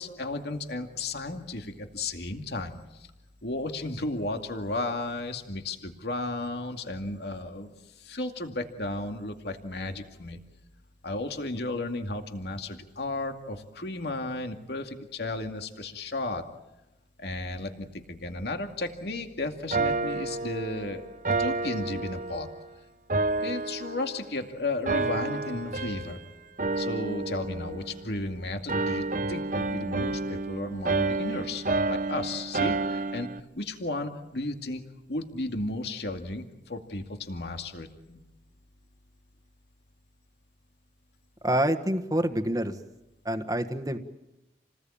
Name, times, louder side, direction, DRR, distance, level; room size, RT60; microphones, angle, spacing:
voice 1, 0.0-3.1 3.4-7.7 8.0-10.4 11.0-16.4 17.2-21.0 21.4-22.5 23.4-26.2 26.8-33.3 33.5-34.8 35.1-38.2, left 2 dB, 70° left, 5 dB, 2.3 m, -34 dB
sound 1, 19.7-22.6 23.1-24.4 24.9-26.2 26.6-28.3 28.7-33.4, right 3 dB, 45° right, 1.0 m, -30 dB
voice 2, 41.4-42.7 43.2-44.0, right 1 dB, 20° right, 7 dB, 1.4 m, -27 dB
29.5 x 19.5 x 8.7 m, 0.97 s
head